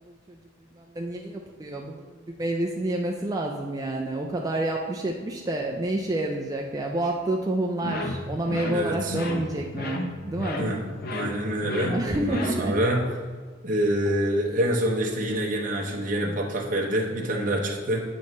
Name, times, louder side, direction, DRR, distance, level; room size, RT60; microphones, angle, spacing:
voice 1, 0.8-10.7 11.9-12.8, right 1 dB, 20° right, 0 dB, 0.4 m, -29 dB
sound 1, 7.8-13.0, left 2 dB, 55° left, 0.7 m, -33 dB
voice 2, 8.7-9.2 10.6-13.0 13.6-18.0, right 1 dB, 45° right, -1 dB, 0.8 m, -26 dB
7.6 x 3.1 x 5.3 m, 1.5 s
head